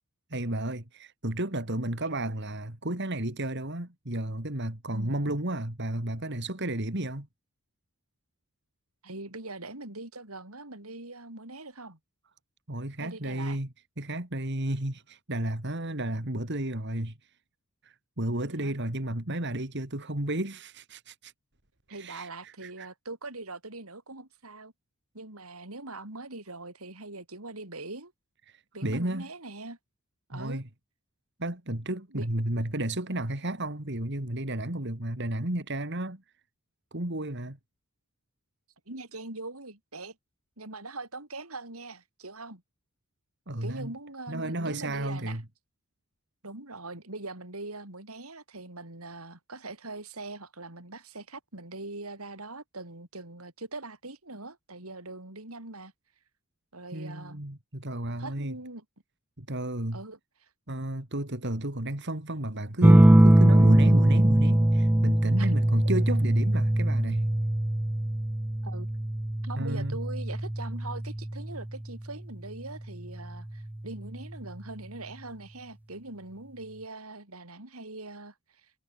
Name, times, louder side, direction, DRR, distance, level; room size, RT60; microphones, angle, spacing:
voice 1, 0.3-7.3 12.7-13.7 14.0-17.1 17.8-21.3 21.9-22.9 28.5-29.3 30.3-30.6 31.4-36.2 36.9-37.6 43.5-43.9 44.3-45.4 56.9-58.5 59.4-60.0 60.7-67.2 69.6-70.0, right 1 dB, 55° right, 3.2 m, -32 dB
voice 2, 9.0-12.0 13.0-13.6 18.5-18.7 21.9-24.7 25.1-28.1 28.7-29.8 30.3-30.6 32.1-32.3 38.9-40.2 40.6-42.6 43.6-45.4 46.4-55.9 56.7-57.4 58.2-58.8 59.9-60.2 65.4-65.5 68.6-68.9 69.4-78.3, right 2 dB, 85° right, 6.6 m, -42 dB
sound 1, 62.8-71.9 73.3-73.9, right 1 dB, 10° right, 0.3 m, -22 dB
head